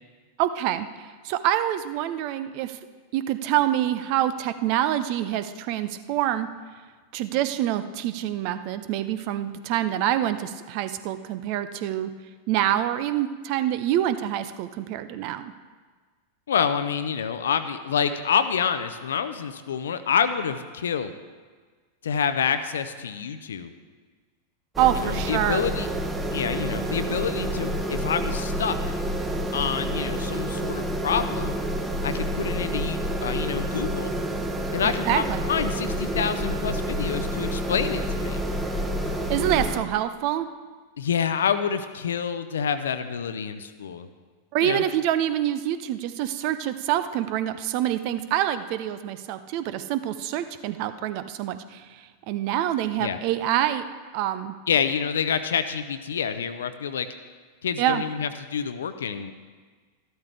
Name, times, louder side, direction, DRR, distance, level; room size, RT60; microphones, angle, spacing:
voice 1, 0.4-2.8 3.1-6.5 7.1-12.1 12.5-15.5 24.8-25.6 35.0-35.4 39.3-40.5 44.5-53.8 54.1-54.5 57.8-58.0, right 12 dB, 45° right, 12 dB, 0.6 m, -26 dB
voice 2, 16.5-21.1 22.0-23.7 24.9-25.9 26.3-28.8 29.5-31.5 32.0-34.1 34.7-38.4 41.0-44.1 44.6-44.8 53.0-53.2 54.7-57.1 57.6-59.3, left 7 dB, 65° left, 11 dB, 0.7 m, -27 dB
sound 1, 24.8-39.8, right 1 dB, 10° right, 1.1 m, -28 dB
13.0 x 12.0 x 3.4 m, 1.5 s
figure-of-eight pair, 90°, 0 cm